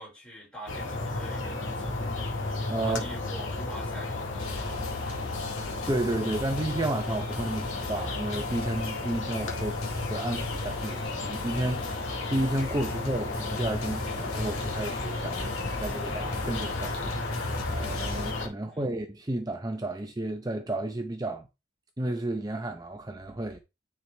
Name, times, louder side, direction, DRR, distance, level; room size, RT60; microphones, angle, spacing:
voice 1, 0.0-2.4 2.8-5.5 12.7-13.1 18.5-18.9, right 1 dB, 5° left, 4.8 m, -46 dB
sound 1, 0.7-18.5, left 2 dB, 55° left, 1.8 m, -33 dB
voice 2, 2.7-3.0 5.9-21.5 22.0-23.6, right 1 dB, 15° right, 0.6 m, -32 dB
sound 2, 4.4-18.3, left 1 dB, 85° left, 2.5 m, -40 dB
9.5 x 4.6 x 3.3 m
head